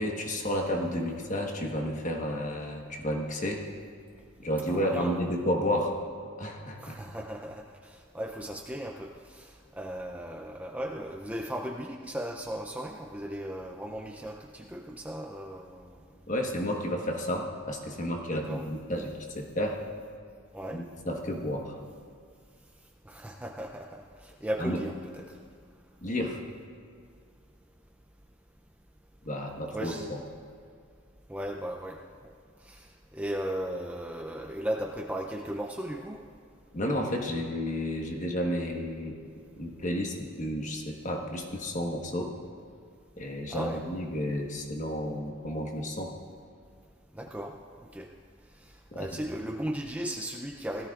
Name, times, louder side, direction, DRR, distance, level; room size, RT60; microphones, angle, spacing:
voice 1, 0.0-3.6 4.4-6.0 6.4-7.0 16.3-19.8 20.7-21.8 24.6-24.8 26.0-26.4 29.3-30.2 36.7-39.2 39.6-42.3 43.2-46.1 48.9-49.1, equal, 35° left, 1 dB, 1.3 m, -31 dB
voice 2, 4.7-5.2 6.8-16.0 18.3-18.7 20.5-20.8 23.1-25.3 29.7-30.1 31.3-32.0 32.6-36.2 43.5-43.8 47.1-47.5 47.9-48.1 49.0-50.9, right 1 dB, 5° right, 2 dB, 0.5 m, -36 dB
17.5 x 13.5 x 2.5 m, 2.2 s
head